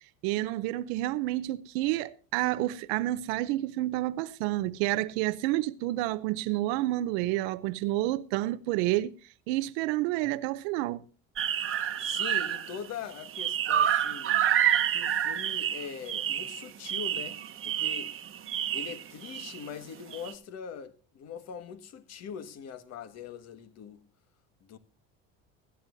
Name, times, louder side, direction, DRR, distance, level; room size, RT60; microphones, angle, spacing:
voice 1, 0.2-9.2 9.5-11.0, right 16 dB, 85° right, 0.7 m, -29 dB
sound 1, 11.4-12.9 13.1-19.6 20.1-20.3, right 10 dB, 40° right, 1.1 m, -29 dB
voice 2, 11.8-14.5 14.9-17.4 17.6-18.2 18.7-24.1 24.6-24.8, left 7 dB, 50° left, 1.8 m, -42 dB
17.0 x 13.0 x 2.7 m
cardioid pair, 115°, 32 cm